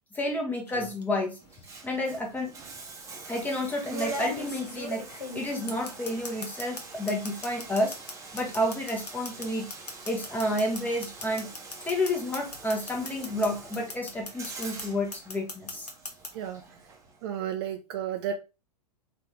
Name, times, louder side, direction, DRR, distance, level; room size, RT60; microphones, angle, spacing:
voice 1, 0.1-1.4 1.8-2.5 3.3-5.0 5.3-7.9 8.3-9.7 10.0-11.5 11.8-15.9, left 1 dB, 10° left, 1 dB, 1.1 m, -30 dB
sound 1, 0.7-1.0 2.2-2.3 3.9-6.8 7.1-13.5 13.7-14.8 15.1-16.3, left 1 dB, 75° left, 1.0 m, -37 dB
Bathtub (filling or washing), 1.4-17.4, right 3 dB, 15° right, 1.0 m, -45 dB
voice 2, 17.2-18.3, right 10 dB, 40° right, 6 dB, 0.6 m, -32 dB
4.0 x 3.2 x 3.7 m, 0.29 s
figure-of-eight pair, 105°, 21 cm